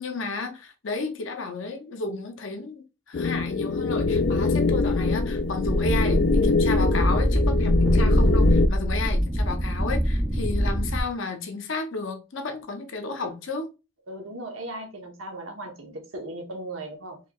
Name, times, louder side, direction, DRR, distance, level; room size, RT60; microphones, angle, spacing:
voice 1, 0.0-13.7, left 3 dB, 70° left, 0.7 m, -32 dB
sound 1, 3.1-8.7, left 4 dB, 55° left, 0.3 m, -24 dB
sound 2, 3.9-11.0, equal, 10° right, 0.5 m, -24 dB
voice 2, 14.1-17.2, right 1 dB, 80° right, 1.0 m, -37 dB
4.4 x 2.9 x 2.3 m
head